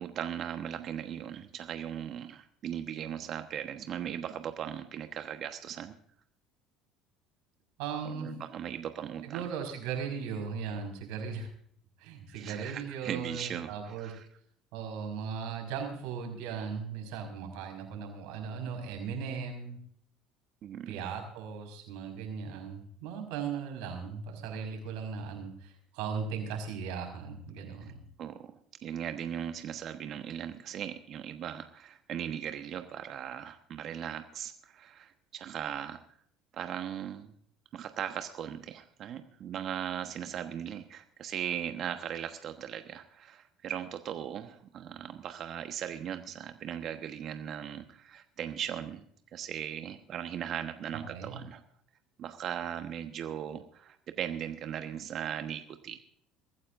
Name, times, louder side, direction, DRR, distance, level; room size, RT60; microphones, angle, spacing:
voice 1, 0.0-5.9 8.1-9.4 12.3-13.7 14.0-14.2 20.6-21.0 28.2-28.5 28.8-36.0 36.5-37.3 37.7-49.0 49.3-51.6 52.2-56.0, right 9 dB, 50° right, 7 dB, 1.2 m, -38 dB
voice 2, 7.8-8.3 9.2-11.5 12.0-14.1 14.7-19.8 20.9-28.0 51.1-51.4, right 6 dB, 70° right, 3 dB, 5.0 m, -37 dB
23.0 x 14.5 x 2.6 m, 0.63 s
hypercardioid pair, 70°, 0 cm